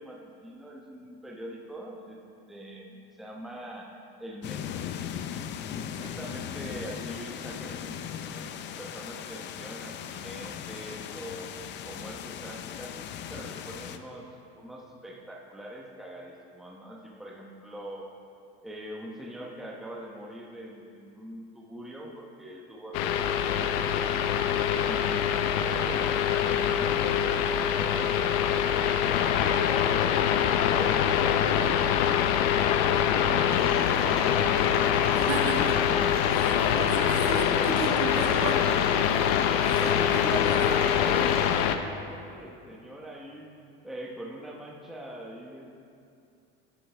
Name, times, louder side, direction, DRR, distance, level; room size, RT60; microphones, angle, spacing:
voice 1, 0.0-2.2 2.5-3.9 4.2-4.8 5.8-11.5 11.8-14.3 14.5-18.1 18.6-23.7 24.0-24.4 24.8-25.4 25.7-30.2 30.6-31.4 32.6-34.9 37.8-38.0 39.2-39.4 39.8-43.5 43.8-45.7, right 1 dB, ahead, -2 dB, 0.9 m, -42 dB
sound 1, 4.4-14.0, left 9 dB, 35° left, 0.5 m, -38 dB
sound 2, 22.9-41.7, left 9 dB, 70° left, 0.7 m, -24 dB
sound 3, 33.5-41.5, right 2 dB, 30° right, 2.6 m, -42 dB
voice 2, 35.1-35.8 36.3-38.7 39.6-41.5, right 4 dB, 55° right, 1 dB, 1.6 m, -35 dB
13.5 x 10.0 x 3.4 m, 2.5 s
cardioid pair, 145°, 30 cm